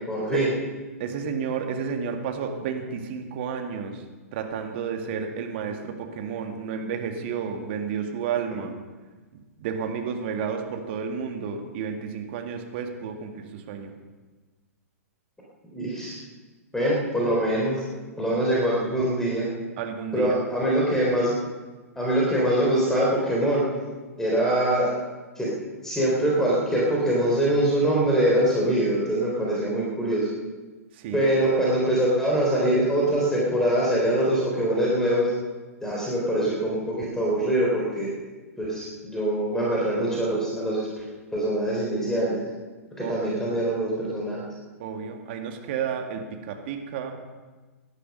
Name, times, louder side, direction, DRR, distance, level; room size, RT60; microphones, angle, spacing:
voice 1, 0.1-0.5 15.7-16.2 16.7-17.8 18.2-19.5 20.1-21.4 22.0-23.6 24.2-24.9 25.4-25.5 25.8-30.3 31.1-35.3 35.8-38.1 38.6-41.0 41.3-42.4 43.0-44.5, right 1 dB, 5° left, -4 dB, 3.6 m, -23 dB
voice 2, 1.0-4.0 4.3-8.8 9.3-13.9 19.8-20.4 31.0-31.3 43.0-43.4 44.8-47.1, right 6 dB, 45° right, 4 dB, 2.1 m, -31 dB
17.0 x 11.5 x 5.4 m, 1.3 s
figure-of-eight pair, 110°, 8 cm